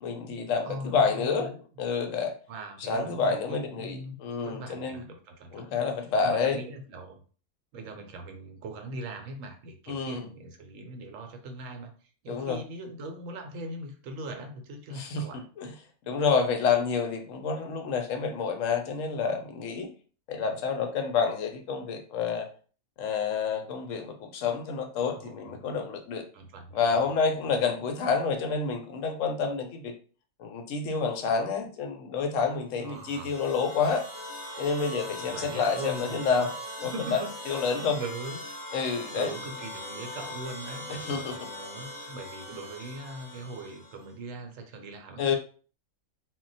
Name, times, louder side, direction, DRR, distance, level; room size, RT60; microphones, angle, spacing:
voice 1, 0.0-1.5 1.8-2.3 2.8-5.0 5.5-6.6 9.9-10.3 12.3-12.6 14.9-15.7 16.1-19.9 20.3-22.5 23.0-26.2 26.7-29.9 30.4-34.0 34.6-36.6 36.8-37.2 37.5-38.0 38.7-39.3 40.9-41.3 45.2-45.4, left 5 dB, 75° left, 5 dB, 0.9 m, -28 dB
voice 2, 0.6-1.5 2.5-5.7 6.2-7.2 7.7-15.4 25.2-25.7 26.3-27.0 27.5-27.8 32.8-33.3 35.2-36.5 36.8-37.3 37.7-38.4 39.1-45.2, right 2 dB, 75° right, 4 dB, 1.0 m, -41 dB
sound 1, 32.8-44.1, equal, 20° left, 0.7 m, -41 dB
2.2 x 2.1 x 3.9 m, 0.41 s
omnidirectional pair, 1.4 m